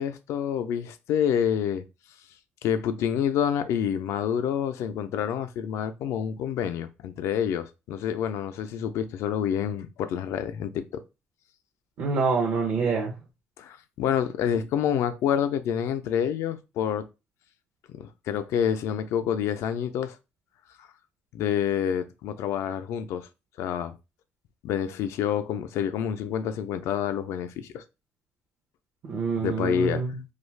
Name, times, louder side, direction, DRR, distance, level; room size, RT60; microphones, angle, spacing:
voice 1, 0.0-1.8 2.6-11.0 13.6-17.1 18.0-20.2 20.8-20.9 21.3-23.3 23.6-23.9 24.6-27.8 29.4-30.0, left 9 dB, 75° left, 0.4 m, -28 dB
voice 2, 12.0-13.1 29.0-30.1, right 5 dB, 60° right, 0.6 m, -26 dB
2.5 x 2.3 x 3.1 m
cardioid pair, 145°, 5 cm